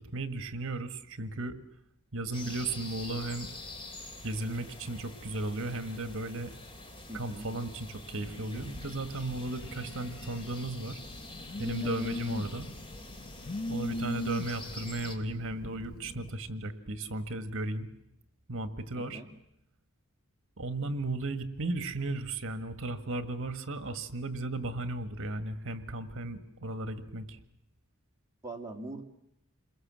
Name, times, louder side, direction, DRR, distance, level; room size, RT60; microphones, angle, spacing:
voice 1, 0.0-1.6 2.1-3.5 4.2-6.5 7.1-11.0 11.6-12.7 13.7-17.9 18.5-19.2 20.6-27.4, right 2 dB, 65° right, 10 dB, 1.7 m, -35 dB
sound 1, 2.3-15.2, left 2 dB, 25° left, 2.6 m, -46 dB
voice 2, 7.1-7.5 11.8-12.1 19.0-19.3 28.4-29.0, right 2 dB, 15° right, 1 dB, 2.5 m, -42 dB
Telephone, 8.2-16.3, left 1 dB, 45° left, 1.2 m, -40 dB
28.5 x 21.0 x 7.7 m, 0.78 s
head